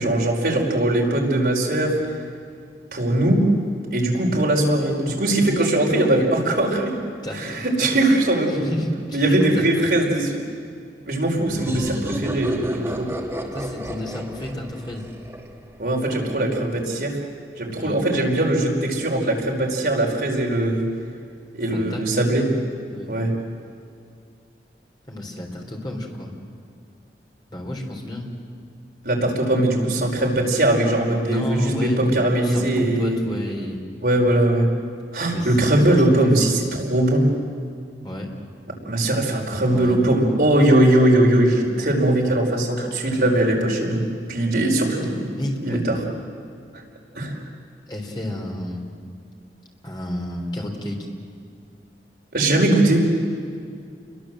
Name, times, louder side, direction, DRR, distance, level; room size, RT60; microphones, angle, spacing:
voice 1, 0.0-2.0 2.9-3.5 3.9-6.9 7.3-8.7 9.1-10.3 11.1-13.1 15.8-17.2 17.6-20.9 21.5-22.4 23.1-23.3 29.0-33.2 34.0-34.7 35.1-37.3 38.8-44.0 44.3-45.3 45.6-46.0 47.1-47.4 52.3-53.0, right 1 dB, 55° right, -1 dB, 5.0 m, -20 dB
voice 2, 7.2-7.6 8.5-9.4 9.8-10.1 13.5-15.1 17.8-18.0 21.7-22.0 22.9-23.1 25.1-26.3 27.5-28.3 31.2-33.8 35.3-35.7 36.4-36.5 38.0-38.3 39.6-40.0 45.4-46.0 47.9-48.8 49.8-51.1, left 1 dB, 25° left, 1 dB, 3.7 m, -31 dB
sound 1, 11.5-16.0, equal, 15° right, 2.2 m, -31 dB
29.5 x 22.5 x 7.7 m, 2.3 s
head